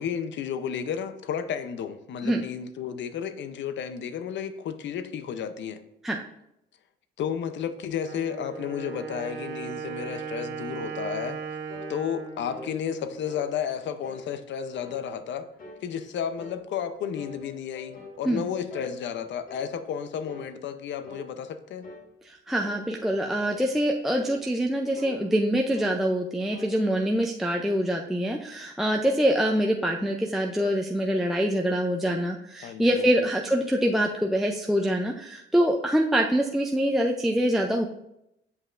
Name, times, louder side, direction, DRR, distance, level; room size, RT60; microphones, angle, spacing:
voice 1, 0.0-5.8 7.2-11.4 11.9-15.5 15.8-21.9 32.6-33.1, left 8 dB, 65° left, 11 dB, 0.6 m, -32 dB
Wind instrument woodwind instrument, 8.0-13.7, right 6 dB, 70° right, 1.0 m, -38 dB
sound 1, 11.7-11.9 12.5-12.7 13.3-13.5 14.0-14.3 14.8-15.1 15.6-15.9 16.4-16.6 17.2-18.2 18.7-19.0 19.5-19.7 20.3-20.5 21.0-21.3 21.8-22.1 22.6-22.9 23.4-23.6 24.2-24.4 25.0-25.2 25.7-26.0 26.5-26.7, left 2 dB, 45° left, 1.5 m, -44 dB
voice 2, 22.2-37.9, equal, ahead, 1 dB, 0.4 m, -25 dB
8.1 x 5.4 x 2.5 m, 0.82 s
cardioid pair, 90°, 20 cm